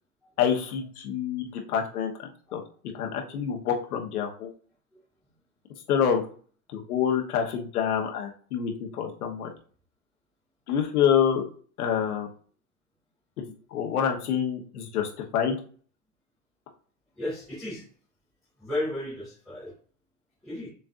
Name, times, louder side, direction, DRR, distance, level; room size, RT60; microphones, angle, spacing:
voice 1, 0.4-2.6 3.0-4.5 5.9-6.2 6.7-9.5 10.7-11.4 11.8-12.3 13.7-15.6, left 8 dB, 80° left, 3 dB, 1.2 m, -27 dB
voice 2, 17.2-17.8 18.6-19.7 20.4-20.7, left 1 dB, ahead, -15 dB, 0.4 m, -33 dB
6.7 x 2.6 x 2.5 m, 0.43 s
supercardioid pair, 180°, 44 cm